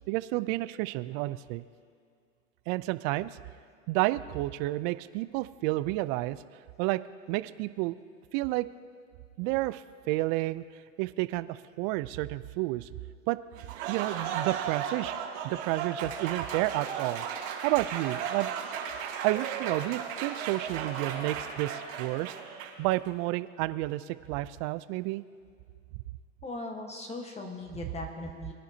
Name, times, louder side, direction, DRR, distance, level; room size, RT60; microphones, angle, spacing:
voice 1, 0.1-1.6 2.7-3.3 3.9-6.4 6.8-7.0 7.3-8.0 8.3-8.7 9.4-10.6 11.0-12.9 13.3-13.4 13.9-15.1 15.4-17.2 17.6-18.5 19.2-25.2, right 18 dB, 40° right, 15 dB, 0.5 m, -30 dB
Applause, 13.5-22.9, right 7 dB, 65° right, 2.5 m, -35 dB
voice 2, 26.4-28.5, left 2 dB, 15° left, 3 dB, 1.3 m, -39 dB
22.5 x 10.5 x 2.8 m, 2.1 s
hypercardioid pair, 115°, 37 cm